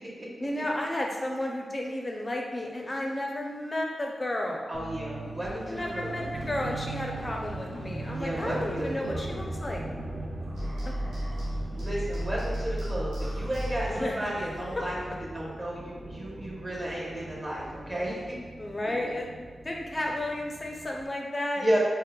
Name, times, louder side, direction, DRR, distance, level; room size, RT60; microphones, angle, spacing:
voice 1, 0.4-4.7 5.7-9.8 10.9-11.0 13.9-14.5 14.8-14.9 18.6-19.3 19.6-21.7, left 1 dB, 25° left, 0 dB, 0.4 m, -32 dB
voice 2, 4.7-6.2 8.2-9.3 11.7-18.2 21.6-21.8, equal, 20° right, -5 dB, 0.8 m, -33 dB
sound 1, 4.7-21.1, right 2 dB, 40° right, 0.5 m, -40 dB
sound 2, 5.1-9.6 10.4-11.7 12.2-12.7 13.2-15.0, equal, 55° right, 0.9 m, -45 dB
sound 3, 10.6-14.1, equal, 85° right, 0.7 m, -33 dB
5.3 x 2.0 x 2.2 m, 1.5 s
wide cardioid pair, 135°, 0 cm